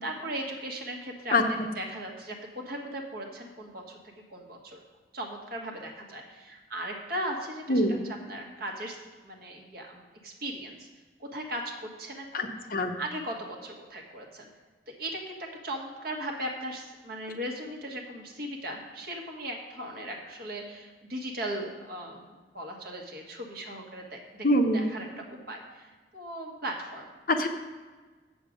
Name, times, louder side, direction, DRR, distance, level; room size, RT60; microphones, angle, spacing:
voice 1, 0.0-4.0 4.3-4.8 5.1-9.0 9.2-10.9 11.2-11.7 12.0-12.5 12.9-14.5 14.9-24.5 24.7-27.5, right 1 dB, 60° right, 1 dB, 1.5 m, -38 dB
voice 2, 12.3-13.0 24.4-24.8 27.3-27.5, left 1 dB, 55° left, 5 dB, 0.8 m, -24 dB
8.0 x 7.3 x 5.1 m, 1.3 s
head